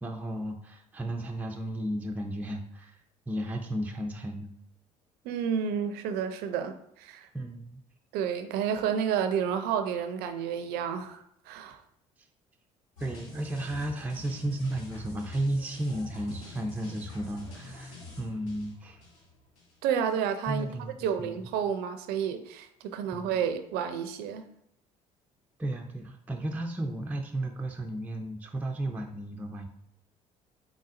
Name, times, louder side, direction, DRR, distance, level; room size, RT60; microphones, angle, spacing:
voice 1, 0.0-3.0 3.3-4.5 7.3-7.8 13.0-19.0 20.5-21.4 23.1-23.3 25.6-29.7, right 1 dB, 10° right, 0.5 m, -34 dB
voice 2, 5.2-7.3 8.1-11.8 19.8-20.7 21.0-24.5, right 8 dB, 70° right, 0.5 m, -30 dB
sound 1, 13.0-19.8 20.1-20.2, left 2 dB, 85° left, 1.0 m, -46 dB
3.9 x 3.6 x 2.5 m
hypercardioid pair, 55°, 17 cm